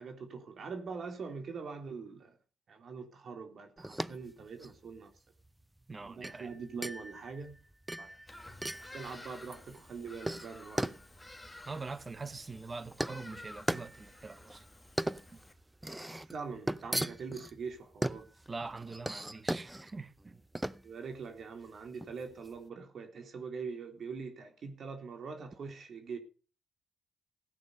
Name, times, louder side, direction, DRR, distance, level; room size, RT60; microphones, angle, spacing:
voice 1, 0.0-2.3 2.7-5.1 5.9-7.6 8.0-8.2 8.9-10.9 16.3-18.3 20.8-26.2, right 5 dB, 55° right, 3.6 m, -43 dB
sound 1, 3.8-22.6, right 1 dB, 10° right, 0.6 m, -39 dB
voice 2, 5.9-6.5 11.6-14.6 18.5-20.4, right 3 dB, 25° right, 1.1 m, -43 dB
Bird vocalization bird call bird song, 8.3-15.5, left 1 dB, 10° left, 2.1 m, -52 dB
16.5 x 8.8 x 5.5 m
cardioid pair, 90°, 0 cm